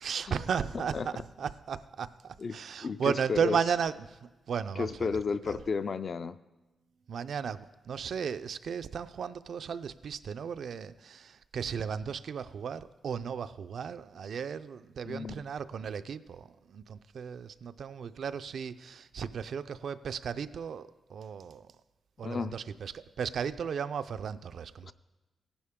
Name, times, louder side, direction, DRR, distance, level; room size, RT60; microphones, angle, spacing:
voice 1, 0.0-5.2 5.5-5.6 7.1-21.7 22.2-24.9, right 7 dB, 70° right, 11 dB, 0.4 m, -35 dB
voice 2, 0.7-1.1 2.4-3.6 4.8-6.4 15.0-15.5 22.2-22.5 24.8-24.9, left 5 dB, 45° left, 12 dB, 0.4 m, -33 dB
15.0 x 11.0 x 3.6 m, 1.1 s
wide cardioid pair, 125°, 0 cm